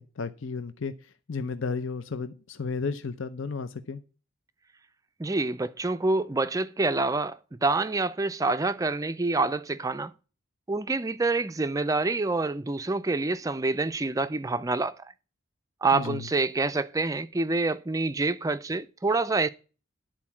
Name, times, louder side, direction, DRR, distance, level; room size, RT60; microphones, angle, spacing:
voice 1, 0.0-4.0 15.9-16.3, left 4 dB, 70° left, 0.7 m, -33 dB
voice 2, 5.2-10.1 10.7-15.0 15.8-19.5, right 3 dB, 15° right, 0.4 m, -27 dB
11.5 x 4.6 x 7.2 m
head